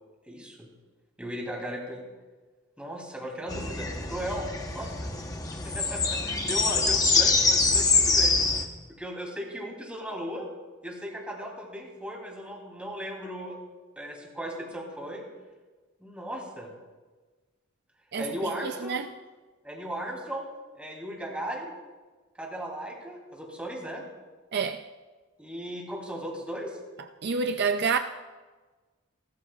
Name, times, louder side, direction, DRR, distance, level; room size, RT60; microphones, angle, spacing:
voice 1, 0.3-0.7 1.2-2.0 2.8-4.5 4.7-5.1 5.5-8.3 9.0-10.5 10.8-13.6 14.0-15.2 16.0-16.7 18.2-19.0 19.6-20.5 20.7-21.8 22.4-24.0 25.4-26.8, equal, 5° right, 3.1 m, -37 dB
sound 1, 3.5-8.7, left 3 dB, 15° left, 0.9 m, -25 dB
voice 2, 18.1-19.1 24.5-24.8 27.2-28.0, right 5 dB, 50° right, 0.5 m, -28 dB
29.0 x 13.0 x 2.4 m
head